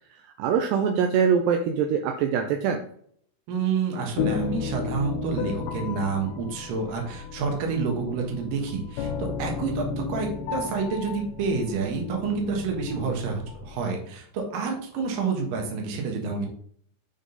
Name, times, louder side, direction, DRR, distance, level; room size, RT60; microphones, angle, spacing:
voice 1, 0.2-2.8, right 7 dB, 80° right, 4 dB, 2.7 m, -23 dB
voice 2, 3.5-16.5, right 5 dB, 60° right, 2 dB, 2.7 m, -28 dB
sound 1, 4.2-13.8, left 6 dB, 80° left, 2.4 m, -34 dB
9.5 x 3.8 x 3.9 m, 0.62 s
omnidirectional pair, 5.0 m